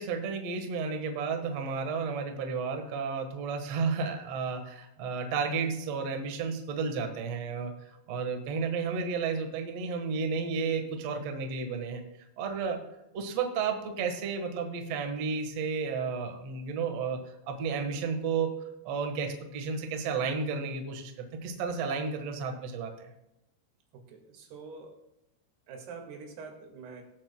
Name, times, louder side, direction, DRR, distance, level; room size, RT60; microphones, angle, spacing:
voice 1, 0.0-7.7 8.1-12.0 12.4-12.8 13.1-17.2 17.5-18.5 18.8-21.1 21.4-23.1, right 5 dB, 90° right, 4 dB, 1.4 m, -32 dB
voice 2, 24.1-25.0 25.7-27.0, right 4 dB, 65° right, 2 dB, 3.7 m, -45 dB
19.5 x 7.9 x 2.2 m, 0.92 s
omnidirectional pair, 5.4 m